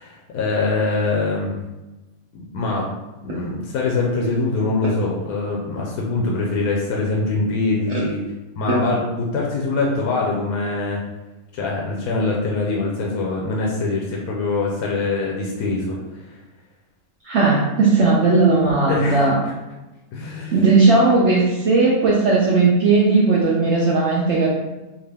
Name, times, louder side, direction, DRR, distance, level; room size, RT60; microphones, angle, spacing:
voice 1, 0.0-1.5 2.3-2.9 3.2-8.2 8.6-11.0 11.5-16.0 18.9-19.3 20.1-20.6, left 3 dB, 85° left, -3 dB, 1.1 m, -23 dB
voice 2, 17.2-19.4 20.5-24.5, right 3 dB, 60° right, -5 dB, 0.8 m, -16 dB
3.6 x 2.5 x 3.4 m, 1.1 s
omnidirectional pair, 1.6 m